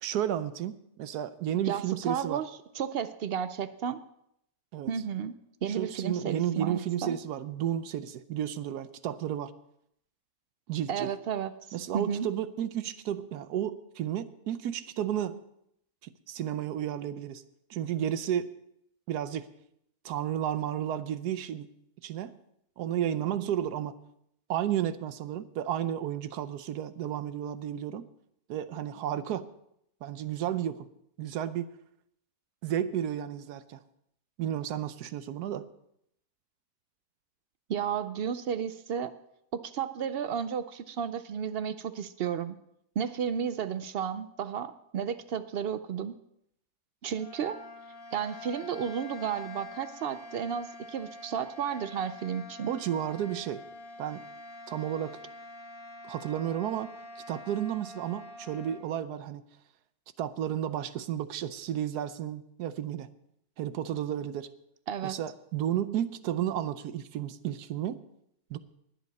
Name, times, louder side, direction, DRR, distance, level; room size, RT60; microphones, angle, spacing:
voice 1, 0.0-2.4 4.7-4.9 5.8-9.5 10.7-11.1 11.7-15.4 16.0-17.4 17.7-18.5 19.1-19.5 20.0-21.7 22.0-22.4 22.8-24.0 24.5-28.1 28.5-29.5 30.0-30.9 31.2-31.7 32.6-33.8 34.4-35.7 52.7-53.6 54.0-54.2 54.7-55.2 56.1-56.9 57.3-59.4 60.2-63.1 63.6-64.5 65.0-68.0 68.5-68.6, right 10 dB, 90° right, 13 dB, 1.3 m, -32 dB
voice 2, 1.7-2.5 2.7-4.0 4.9-5.3 5.6-7.1 10.9-12.3 37.7-39.1 39.6-42.6 43.0-46.1 47.0-47.6 48.1-52.7 64.9-65.2, right 8 dB, 70° right, 12 dB, 0.5 m, -33 dB
sound 1, 47.0-58.9, left 2 dB, 65° left, 1.8 m, -46 dB
20.5 x 7.7 x 4.1 m, 0.74 s
omnidirectional pair, 1.6 m